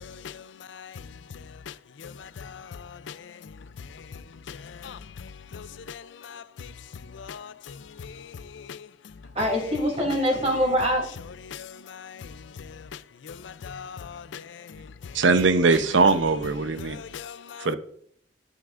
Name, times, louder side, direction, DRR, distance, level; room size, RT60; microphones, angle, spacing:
voice 1, 0.0-6.7 7.0-8.9 11.5-15.2 16.8-17.7, left 6 dB, 75° left, 0.4 m, -42 dB
voice 2, 9.3-11.0, equal, 35° right, 2.9 m, -24 dB
voice 3, 15.1-17.0 17.6-17.8, right 4 dB, 80° right, 0.7 m, -21 dB
10.0 x 9.2 x 2.5 m
head